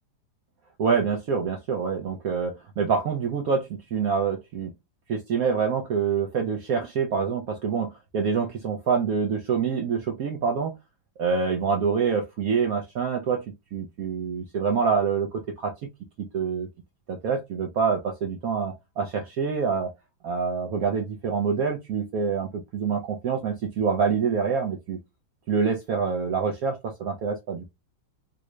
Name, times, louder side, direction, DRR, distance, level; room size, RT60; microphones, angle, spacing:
voice 1, 0.8-4.7 5.1-10.7 11.2-15.7 16.2-16.7 17.1-19.9 20.2-25.0 25.5-27.6, right 6 dB, 70° right, 0.8 m, -26 dB
3.7 x 2.1 x 3.0 m
omnidirectional pair, 2.1 m